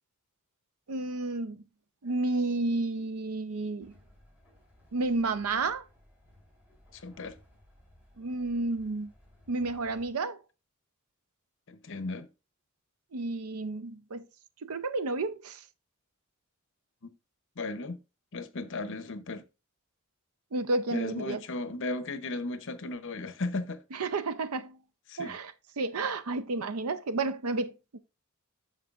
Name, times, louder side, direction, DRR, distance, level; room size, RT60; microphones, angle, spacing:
voice 1, 0.9-1.6 2.0-3.9 4.9-5.8 8.2-9.1 9.5-10.4 13.1-14.2 14.6-15.6 20.5-21.4 23.9-24.8 25.2-28.0, right 3 dB, 90° right, 0.6 m, -31 dB
Train, 3.8-10.1, left 1 dB, 5° right, 4.0 m, -59 dB
voice 2, 6.9-7.4 11.7-12.3 17.0-17.1 17.6-18.0 18.3-19.4 20.9-23.8 25.1-25.3, left 2 dB, 60° left, 0.8 m, -35 dB
9.2 x 6.6 x 2.4 m
head